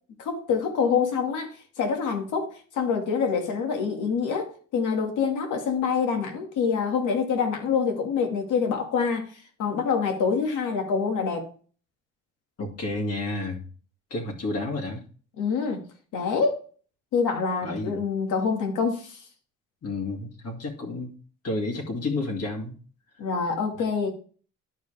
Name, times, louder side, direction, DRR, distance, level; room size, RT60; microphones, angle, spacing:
voice 1, 0.2-1.5 1.8-9.3 9.6-11.5 15.4-15.8 16.1-16.6 17.1-19.2 23.2-24.1, left 5 dB, 85° left, 2.0 m, -26 dB
voice 2, 12.6-13.7 14.1-15.0 17.6-18.0 19.8-21.2 21.4-22.7, left 2 dB, 55° left, 2.3 m, -30 dB
11.5 x 4.8 x 3.4 m
cardioid pair, 90°, 30 cm